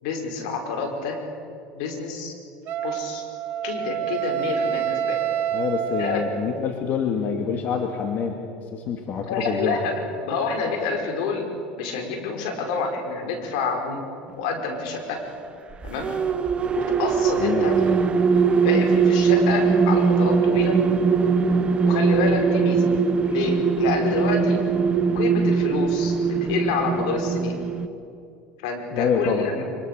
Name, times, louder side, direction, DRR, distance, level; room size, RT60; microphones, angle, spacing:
voice 1, 0.0-1.2 1.7-2.3 2.8-3.2 3.6-5.2 6.0-6.2 9.3-11.4 11.8-14.1 14.3-15.2 15.8-16.1 16.7-17.9 18.6-20.8 21.8-22.8 23.3-24.6 25.1-27.5 28.6-29.6, left 4 dB, 75° left, 3 dB, 4.9 m, -28 dB
Wind instrument woodwind instrument, 2.7-6.6, right 9 dB, 55° right, 2.0 m, -27 dB
voice 2, 5.5-8.4 8.7-9.8 17.4-17.6 28.9-29.4, left 6 dB, 50° left, 3 dB, 2.4 m, -26 dB
sound 1, 15.7-27.9, right 5 dB, 30° right, 1.1 m, -21 dB
24.5 x 23.5 x 6.8 m, 2.5 s
supercardioid pair, 95°, 4 cm